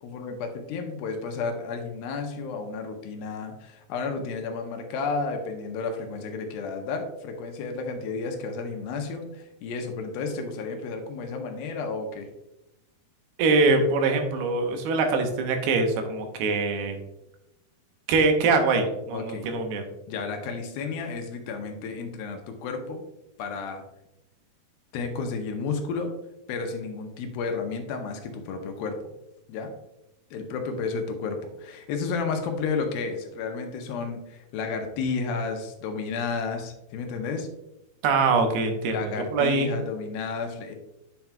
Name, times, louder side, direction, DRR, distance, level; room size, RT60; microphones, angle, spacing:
voice 1, 0.0-12.3 19.1-19.5 20.1-23.0 23.4-23.8 24.9-26.1 26.5-29.1 29.5-29.7 30.3-37.5 38.9-40.8, left 4 dB, 80° left, 4 dB, 2.4 m, -32 dB
voice 2, 13.4-17.0 18.1-19.9 38.0-39.7, right 3 dB, 85° right, 4 dB, 2.8 m, -23 dB
8.6 x 5.8 x 2.3 m, 0.90 s
omnidirectional pair, 4.5 m